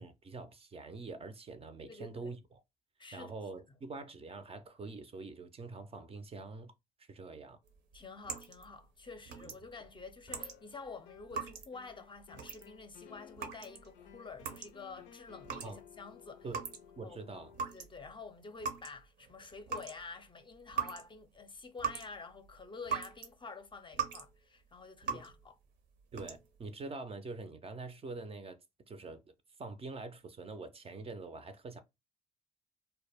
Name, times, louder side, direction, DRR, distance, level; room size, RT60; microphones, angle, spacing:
voice 1, 0.0-2.6 3.1-6.7 7.0-7.6 9.4-9.5 15.6-15.8 16.4-16.6 17.0-17.5 25.1-25.2 26.1-28.6 28.9-29.2 29.6-31.8, right 3 dB, 30° right, 0.5 m, -45 dB
voice 2, 1.8-2.4 3.0-3.3 3.7-3.8 7.9-16.5 17.0-17.2 17.7-25.6, left 4 dB, 25° left, 0.5 m, -49 dB
sound 1, 7.6-17.1 17.4-23.3 23.7-24.3 24.6-25.5 26.0-26.7, right 6 dB, 70° right, 0.7 m, -41 dB
sound 2, 10.3-11.4 11.7-17.6, left 10 dB, 80° left, 0.4 m, -57 dB
2.1 x 2.1 x 3.3 m
supercardioid pair, 65°, 19 cm